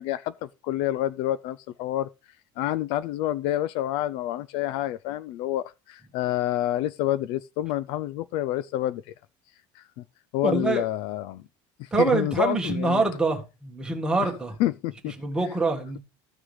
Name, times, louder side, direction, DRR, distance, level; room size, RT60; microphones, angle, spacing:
voice 1, 0.0-2.1 2.6-9.1 9.7-10.0 10.3-11.4 11.8-13.0 14.2-14.3 14.6-15.1, left 13 dB, 50° left, 0.4 m, -28 dB
voice 2, 10.4-10.8 11.9-14.5 15.2-16.0, right 3 dB, 5° right, 1.6 m, -25 dB
14.0 x 6.2 x 3.2 m
cardioid pair, 175°, 11 cm